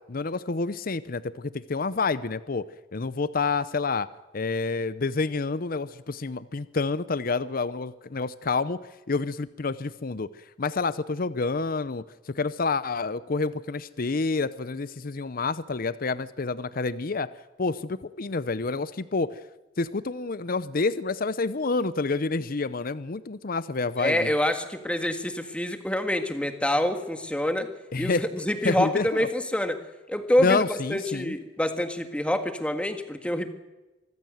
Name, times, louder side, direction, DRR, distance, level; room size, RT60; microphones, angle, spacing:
voice 1, 0.1-2.6 2.9-4.1 4.3-8.8 9.1-10.3 10.6-17.3 17.6-19.3 19.8-24.3 27.9-28.3 28.6-29.3 30.4-31.4, left 4 dB, 50° left, 16 dB, 0.7 m, -28 dB
voice 2, 24.0-27.7 28.0-29.8 30.1-33.5, left 1 dB, 5° left, 7 dB, 1.9 m, -26 dB
24.5 x 15.0 x 7.9 m, 1.1 s
head